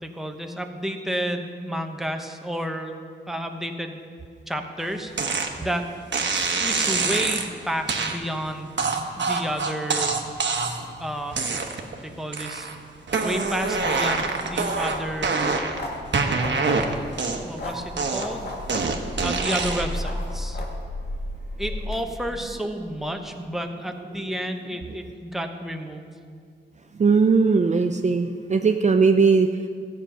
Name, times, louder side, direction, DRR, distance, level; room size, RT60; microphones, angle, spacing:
voice 1, 0.0-2.9 3.3-4.0 4.5-5.9 6.6-8.7 9.1-10.1 11.0-11.4 12.0-12.7 13.2-15.6 17.4-18.5 19.2-20.6 21.6-26.1, equal, ahead, 4 dB, 1.0 m, -31 dB
sound 1, 5.2-5.5 6.1-7.5 7.9-8.2 8.8-10.9 11.3-11.9 12.3-12.8 13.1-15.8 16.1-17.6 18.0-20.0, right 4 dB, 70° right, 1.1 m, -25 dB
sound 2, 13.2-22.0, left 1 dB, 55° left, 1.9 m, -34 dB
voice 2, 26.9-29.7, right 4 dB, 40° right, 6 dB, 0.5 m, -19 dB
13.5 x 8.5 x 5.6 m, 2.1 s
wide cardioid pair, 90°, 19 cm